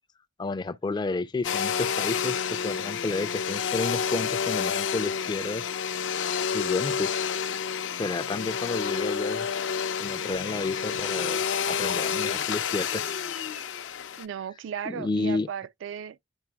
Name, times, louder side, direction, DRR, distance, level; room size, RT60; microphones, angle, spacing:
voice 1, 0.4-5.7 6.5-7.2 7.9-9.5 10.0-13.1 14.9-15.5, left 3 dB, 25° left, 0.3 m, -31 dB
Domestic sounds home sounds, 1.4-14.3, left 7 dB, 80° left, 0.5 m, -29 dB
voice 2, 14.2-16.2, right 8 dB, 85° right, 0.3 m, -36 dB
10.5 x 4.0 x 2.2 m
head